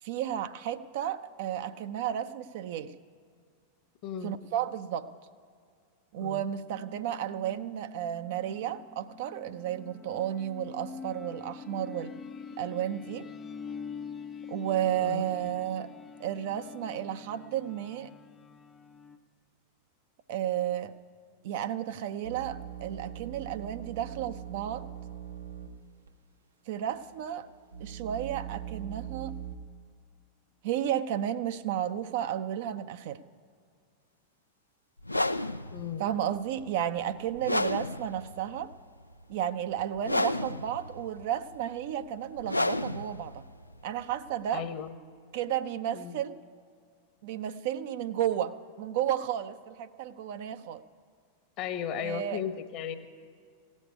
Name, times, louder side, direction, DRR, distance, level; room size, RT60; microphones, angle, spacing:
voice 1, 0.0-2.9 4.2-5.1 6.1-12.2 12.6-13.3 14.5-15.9 16.2-18.1 20.3-20.9 21.4-24.9 26.7-27.5 27.8-29.4 30.6-33.2 36.0-38.7 39.3-43.4 43.8-44.6 45.3-46.4 47.2-50.8 52.0-52.4, right 10 dB, 50° right, 10 dB, 0.5 m, -33 dB
voice 2, 4.0-4.4 6.2-6.5 15.0-15.3 35.7-36.0 44.5-44.9 45.9-46.2 51.6-53.0, left 8 dB, 40° left, 10 dB, 1.0 m, -36 dB
sound 1, 6.7-19.2, left 5 dB, 20° left, 0.6 m, -45 dB
sound 2, 22.2-25.8 26.1-26.2 26.8-29.6, right 10 dB, 75° right, 0.8 m, -42 dB
sound 3, 35.0-44.9, left 2 dB, 85° left, 0.3 m, -33 dB
16.5 x 6.4 x 9.6 m, 2.2 s
figure-of-eight pair, 90°, 0 cm